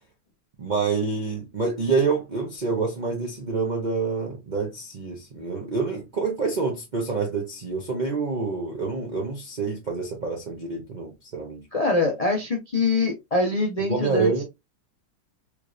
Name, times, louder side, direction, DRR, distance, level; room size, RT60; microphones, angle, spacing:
voice 1, 0.6-11.6 13.9-14.4, right 4 dB, 60° right, 0.4 m, -27 dB
voice 2, 11.7-14.4, left 2 dB, 80° left, 0.3 m, -24 dB
3.5 x 3.1 x 2.5 m
omnidirectional pair, 2.0 m